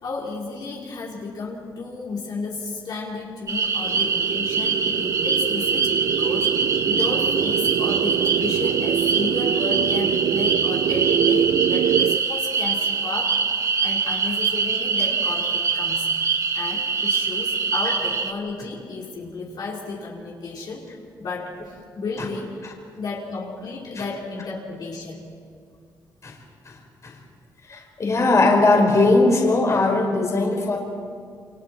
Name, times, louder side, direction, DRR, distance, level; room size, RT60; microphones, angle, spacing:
voice 1, 0.0-6.5 6.8-13.5 13.8-16.1 16.5-25.3, left 3 dB, 60° left, -4 dB, 4.6 m, -33 dB
sound 1, 3.5-18.3, right 5 dB, 40° right, 1.9 m, -24 dB
sound 2, 3.8-12.2, right 9 dB, 75° right, 0.5 m, -24 dB
voice 2, 26.6-27.2 27.7-30.8, left 2 dB, 40° left, 0 dB, 5.0 m, -19 dB
29.0 x 28.0 x 4.6 m, 2.2 s
cardioid pair, 100°, 8 cm